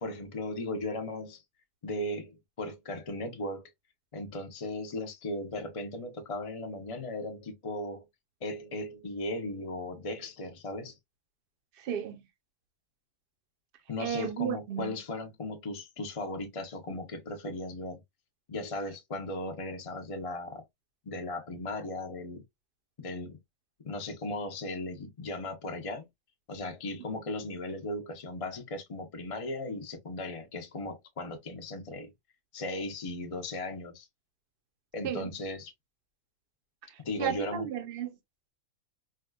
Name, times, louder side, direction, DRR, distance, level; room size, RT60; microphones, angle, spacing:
voice 1, 0.0-1.4 1.8-3.7 4.1-8.1 8.4-10.9 13.9-18.0 18.5-20.6 21.1-22.4 23.0-23.4 23.8-26.0 26.5-32.1 32.5-34.1 34.9-35.7 37.0-37.7, left 2 dB, 35° left, 0.5 m, -37 dB
voice 2, 11.8-12.2 14.0-15.0 16.9-17.0 35.0-35.3 36.9-38.1, right 9 dB, 50° right, 0.7 m, -34 dB
4.6 x 2.3 x 2.2 m
omnidirectional pair, 1.5 m